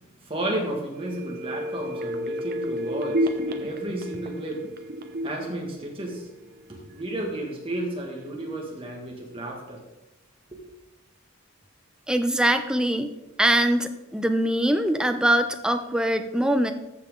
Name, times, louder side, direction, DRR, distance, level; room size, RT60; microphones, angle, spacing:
voice 1, 0.2-4.7 5.2-6.3 6.7-9.8 10.5-10.6, right 1 dB, 25° right, 0 dB, 1.8 m, -32 dB
sound 1, 1.0-6.6 7.0-7.1, equal, 45° right, 0.8 m, -31 dB
voice 2, 12.1-13.1 13.4-16.7, right 1 dB, 5° right, 7 dB, 0.5 m, -23 dB
14.0 x 5.8 x 3.7 m, 1.0 s
head